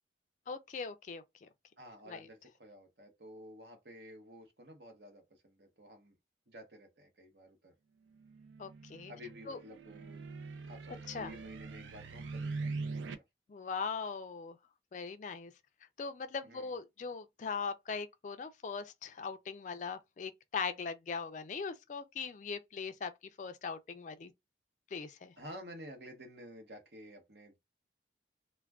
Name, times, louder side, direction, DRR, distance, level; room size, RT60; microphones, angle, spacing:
voice 1, 0.5-1.5 2.1-2.3 8.6-9.1 9.5-9.6 11.1-11.3 13.5-14.6 14.9-15.5 16.0-23.1 23.4-24.3 24.9-25.3, left 5 dB, 40° left, 0.3 m, -40 dB
voice 2, 1.8-6.1 6.5-7.7 9.1-10.3 10.7-13.0 16.4-16.7 25.4-27.6, equal, 60° right, 0.9 m, -52 dB
sound 1, 8.2-13.2, right 3 dB, 90° right, 0.4 m, -42 dB
2.3 x 2.1 x 3.4 m
head